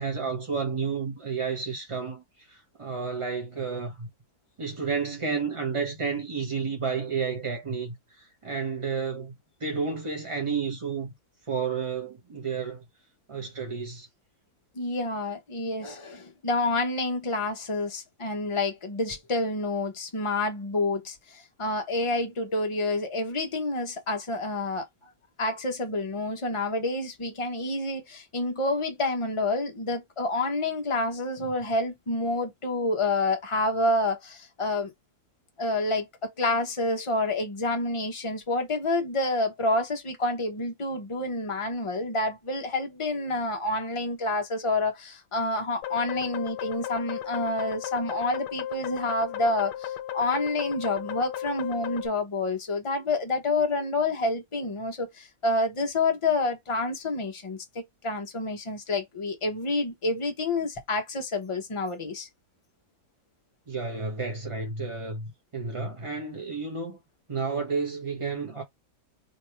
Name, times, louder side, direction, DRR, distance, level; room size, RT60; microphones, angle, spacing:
voice 1, 0.0-2.2 2.5-4.1 4.6-9.4 9.6-11.1 11.5-12.8 13.3-14.1 63.7-65.3 65.5-67.0 67.3-68.6, right 5 dB, 35° right, 0.5 m, -31 dB
voice 2, 14.7-25.1 25.4-34.9 35.6-62.3, left 2 dB, 25° left, 0.7 m, -28 dB
sound 1, 45.8-52.1, left 11 dB, 90° left, 1.2 m, -35 dB
3.3 x 2.8 x 4.4 m
omnidirectional pair, 1.8 m